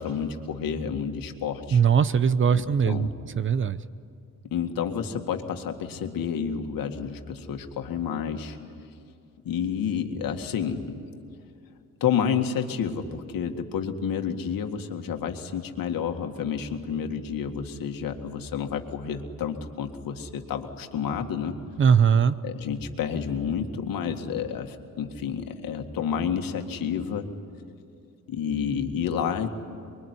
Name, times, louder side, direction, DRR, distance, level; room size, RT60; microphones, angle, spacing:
voice 1, 0.0-1.8 2.5-3.1 4.5-8.6 9.4-11.0 12.0-21.6 22.4-27.3 28.3-29.5, left 7 dB, 85° left, 5 dB, 2.0 m, -30 dB
voice 2, 1.7-3.8 21.8-22.4, right 7 dB, 35° right, 15 dB, 0.6 m, -21 dB
25.0 x 23.0 x 9.8 m, 2.5 s
wide cardioid pair, 160°, 34 cm